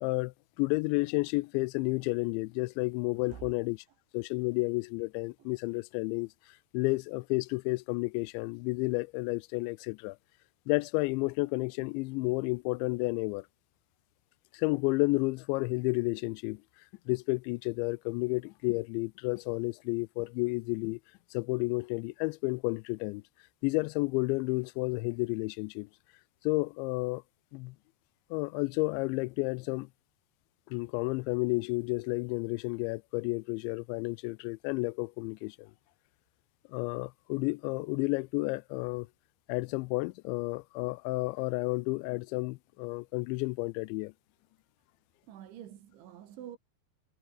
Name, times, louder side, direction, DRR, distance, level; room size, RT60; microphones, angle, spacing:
voice 1, 0.0-3.8 4.1-6.3 6.7-10.2 10.7-13.5 14.5-16.6 17.1-21.0 21.3-23.2 23.6-25.9 26.4-27.2 27.5-27.8 28.3-29.9 30.7-35.7 36.7-39.1 39.5-44.1, left 25 dB, 85° left, 2.8 m, -31 dB
voice 2, 45.3-46.6, right 11 dB, 90° right, 4.7 m, -47 dB
omnidirectional pair, 5.2 m